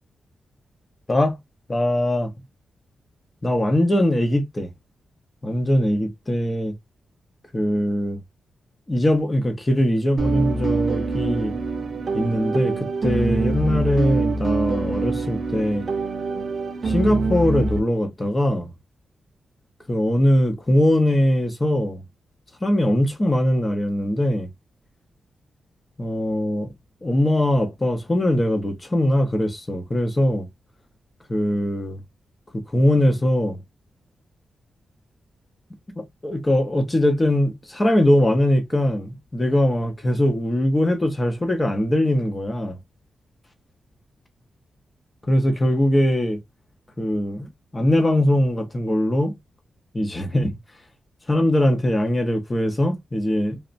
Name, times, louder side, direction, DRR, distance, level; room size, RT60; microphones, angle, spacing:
voice 1, 1.7-2.3 3.4-4.7 5.4-6.7 7.5-8.2 8.9-11.5 12.1-15.9 16.8-18.7 19.9-22.0 22.6-24.5 26.0-26.7 27.0-30.5 31.3-32.0 32.5-33.6 36.0-42.8 45.3-46.4 47.0-49.4 49.9-50.6 51.3-53.6, left 1 dB, 15° left, 0.6 m, -21 dB
sound 1, 10.2-17.8, right 3 dB, 45° right, 0.5 m, -24 dB
3.0 x 2.0 x 2.4 m
wide cardioid pair, 155°, 0 cm